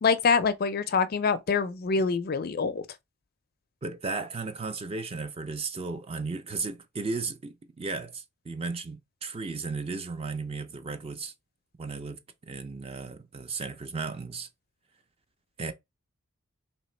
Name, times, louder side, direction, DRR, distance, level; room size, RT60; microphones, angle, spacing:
voice 1, 0.0-2.8, left 5 dB, 45° left, 0.4 m, -25 dB
voice 2, 3.8-11.3 11.8-14.5 15.6-15.7, right 4 dB, 25° right, 0.4 m, -35 dB
3.1 x 2.9 x 4.3 m
head